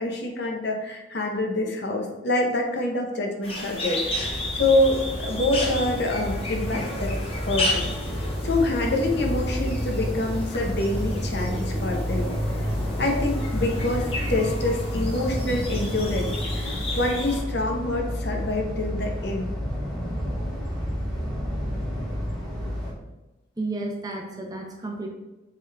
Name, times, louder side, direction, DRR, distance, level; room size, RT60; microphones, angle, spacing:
voice 1, 0.0-7.1 7.4-7.9 8.4-12.7 13.0-19.5, left 2 dB, 55° left, 1 dB, 1.0 m, -26 dB
sound 1, 3.4-17.4, left 1 dB, 30° left, 1.1 m, -34 dB
sound 2, 4.0-22.9, equal, ahead, 1.8 m, -30 dB
voice 2, 23.6-25.1, right 2 dB, 20° right, 0 dB, 0.9 m, -32 dB
7.1 x 3.8 x 3.5 m, 1.0 s
head